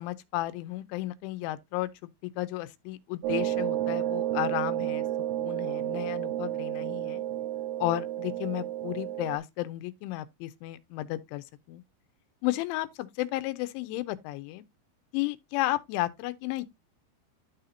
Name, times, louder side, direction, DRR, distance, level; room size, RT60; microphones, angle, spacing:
voice 1, 0.0-1.9 2.2-5.1 5.4-7.2 7.8-11.8 12.4-14.6 15.1-16.6, left 17 dB, 90° left, 3.1 m, -33 dB
sound 1, 3.2-9.4, right 13 dB, 80° right, 2.8 m, -31 dB
12.5 x 4.2 x 2.6 m
omnidirectional pair, 5.4 m